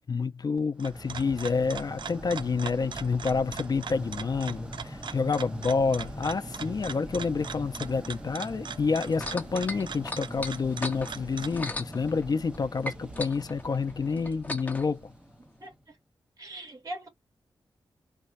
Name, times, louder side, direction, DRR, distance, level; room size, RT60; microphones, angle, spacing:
voice 1, 0.1-15.1, left 4 dB, 50° left, 0.6 m, -28 dB
sound 1, 0.6-11.7, right 6 dB, 65° right, 0.4 m, -41 dB
sound 2, 0.8-15.8, right 1 dB, 10° right, 0.9 m, -42 dB
sound 3, 9.1-12.6 12.8-14.9 15.6-15.7, left 1 dB, 20° left, 1.0 m, -37 dB
voice 2, 15.6-16.0 16.4-17.1, right 1 dB, 45° right, 1.9 m, -41 dB
4.1 x 2.3 x 2.5 m
wide cardioid pair, 80°, 9 cm